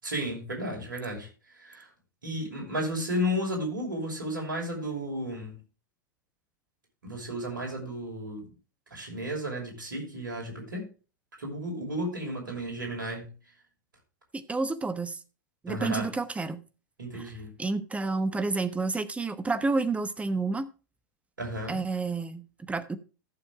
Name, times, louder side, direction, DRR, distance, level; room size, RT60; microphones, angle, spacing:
voice 1, 0.0-1.3 1.5-1.9 2.2-5.6 7.0-8.5 8.9-10.9 11.4-13.3 15.7-16.1 17.0-17.5 21.4-21.8, equal, 80° right, 6.0 m, -33 dB
voice 2, 14.3-15.2 15.6-16.6 17.1-17.3 17.6-20.7 21.7-23.0, right 3 dB, 10° right, 1.1 m, -30 dB
14.5 x 7.0 x 3.6 m
hypercardioid pair, 95°, 11 cm